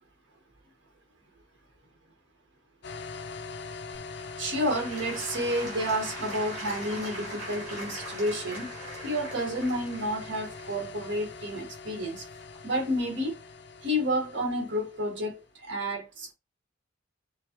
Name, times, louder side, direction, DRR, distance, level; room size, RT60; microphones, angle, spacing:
sound 1, 2.8-15.4, left 4 dB, 60° left, 0.5 m, -43 dB
Applause / Crowd, 3.9-12.8 13.4-13.5, right 1 dB, 40° right, 3.1 m, -42 dB
voice 1, 4.4-8.7 9.0-12.2 12.6-13.4 13.8-16.3, equal, 65° right, 1.6 m, -30 dB
6.4 x 2.3 x 2.9 m
head